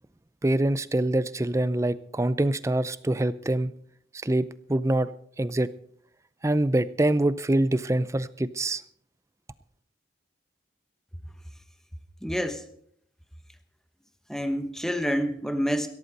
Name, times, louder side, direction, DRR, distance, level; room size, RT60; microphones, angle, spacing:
voice 1, 0.4-3.7 4.2-5.7 6.4-8.8, right 1 dB, 15° right, 16 dB, 0.4 m, -25 dB
voice 2, 12.2-12.6 14.3-15.9, equal, 5° left, 8 dB, 1.1 m, -27 dB
17.0 x 14.0 x 4.1 m, 0.64 s
head